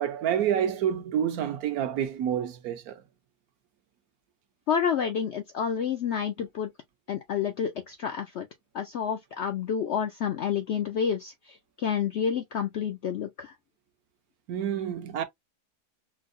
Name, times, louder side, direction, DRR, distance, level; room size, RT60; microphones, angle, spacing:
voice 1, 0.0-3.0 14.5-15.2, right 9 dB, 75° right, 1.1 m, -28 dB
voice 2, 4.7-6.7 7.1-8.5 8.7-13.5, left 7 dB, 70° left, 0.6 m, -29 dB
4.5 x 2.0 x 2.4 m
omnidirectional pair, 1.7 m